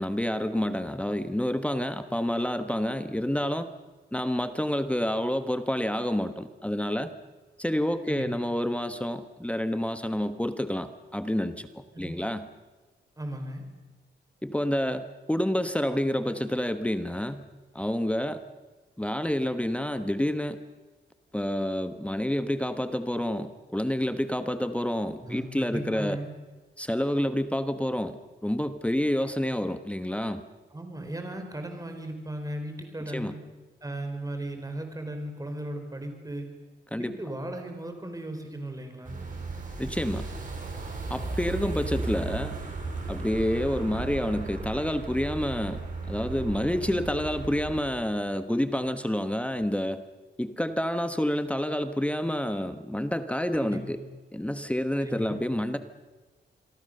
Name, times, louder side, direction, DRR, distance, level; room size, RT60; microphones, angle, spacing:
voice 1, 0.0-3.7 4.1-7.1 7.6-12.5 14.4-17.4 17.7-18.4 19.0-20.6 21.3-26.2 26.8-30.4 33.1-33.3 36.9-37.2 39.8-40.3 41.1-42.6 43.1-50.0 50.4-54.0 54.3-55.8, left 1 dB, 5° left, 10 dB, 1.2 m, -28 dB
voice 2, 13.2-13.6 25.2-26.3 30.7-33.4 33.8-36.5 37.0-39.1 53.6-54.0 55.0-55.4, right 1 dB, 20° right, 5 dB, 4.8 m, -36 dB
sound 1, 39.0-47.8, right 3 dB, 45° right, 6.7 m, -35 dB
27.5 x 23.0 x 6.8 m, 1.3 s
cardioid pair, 105°, 19 cm